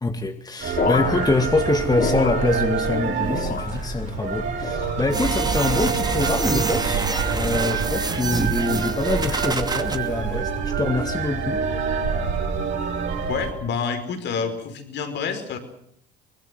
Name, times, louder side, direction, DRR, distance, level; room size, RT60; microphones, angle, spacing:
voice 1, 0.0-11.6, left 3 dB, 20° left, 2.2 m, -25 dB
sound 1, 0.6-13.5, right 6 dB, 65° right, 7.6 m, -26 dB
sound 2, 0.8-3.0 3.3-4.1 4.6-5.3 5.9-6.4 7.3-7.7 8.6-8.9, left 5 dB, 45° left, 4.0 m, -30 dB
sound 3, 5.1-10.0, right 3 dB, 20° right, 2.7 m, -27 dB
voice 2, 13.3-15.6, left 6 dB, 60° left, 5.3 m, -28 dB
24.0 x 21.0 x 7.9 m
hypercardioid pair, 70°, 20 cm